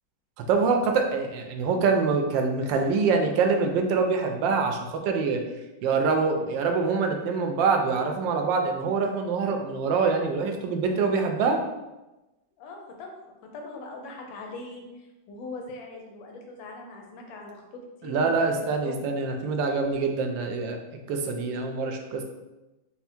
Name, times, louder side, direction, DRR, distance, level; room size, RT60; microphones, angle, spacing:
voice 1, 0.5-5.4 5.8-11.6 18.0-22.2, right 4 dB, 80° right, 4 dB, 1.3 m, -25 dB
voice 2, 12.6-13.1 13.5-14.8 15.3-19.0, left 2 dB, 90° left, 2 dB, 1.4 m, -41 dB
4.4 x 2.0 x 4.3 m, 1.0 s
omnidirectional pair, 2.1 m